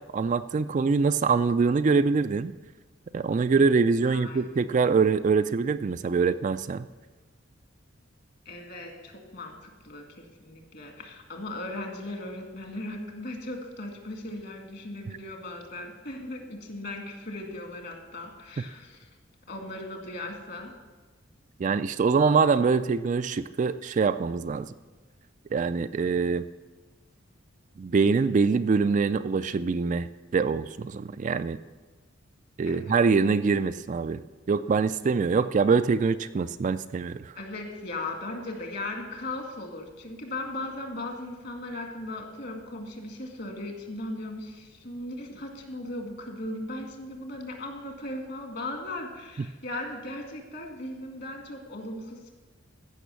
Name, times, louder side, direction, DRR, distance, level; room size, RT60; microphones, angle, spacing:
voice 1, 0.1-2.5 3.1-6.8 21.6-24.7 25.5-26.5 27.8-30.1 30.3-31.6 32.6-34.2 34.5-37.3, right 5 dB, 40° right, 12 dB, 0.3 m, -24 dB
voice 2, 4.0-4.4 8.5-19.1 19.5-20.7 32.7-32.9 37.4-52.3, left 2 dB, 55° left, 2 dB, 2.0 m, -38 dB
15.0 x 6.0 x 6.9 m, 1.3 s
head